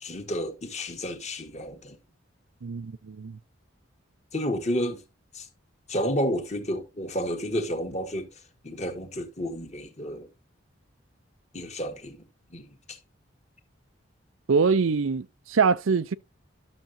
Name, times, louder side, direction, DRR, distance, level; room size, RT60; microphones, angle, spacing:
voice 1, 0.0-2.0 4.3-5.0 5.3-5.4 5.9-8.3 8.6-10.3 11.5-12.2 12.5-12.7, equal, 35° left, 1.7 m, -31 dB
voice 2, 2.6-3.4 14.5-16.1, right 5 dB, 85° right, 0.5 m, -24 dB
11.5 x 6.8 x 2.8 m
head